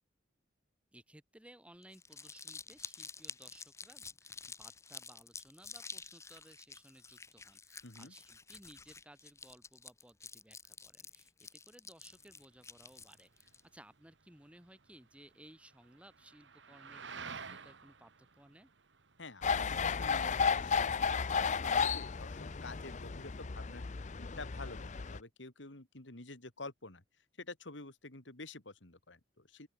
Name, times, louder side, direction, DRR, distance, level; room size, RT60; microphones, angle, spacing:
voice 1, 0.9-18.1 18.4-18.7, right 1 dB, 5° right, 2.2 m, -59 dB
Crumpling crinkling, 1.8-13.6, left 5 dB, 15° left, 0.9 m, -50 dB
voice 2, 7.8-8.1 19.2-23.8 24.2-27.0 27.4-29.7, left 3 dB, 80° left, 3.1 m, -49 dB
sound 1, 12.0-21.9, right 5 dB, 75° right, 1.7 m, -53 dB
sound 2, 19.4-25.2, left 5 dB, 40° left, 0.6 m, -33 dB
open air
head